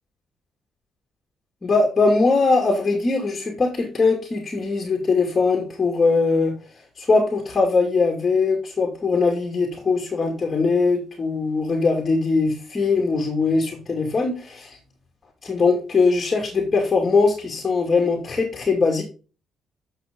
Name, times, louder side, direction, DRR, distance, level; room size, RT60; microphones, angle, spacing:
voice 1, 1.6-6.5 7.0-14.8 15.4-19.0, left 4 dB, 30° left, 0 dB, 2.6 m, -21 dB
9.9 x 6.5 x 3.8 m, 0.35 s
cardioid pair, 90°, 0 cm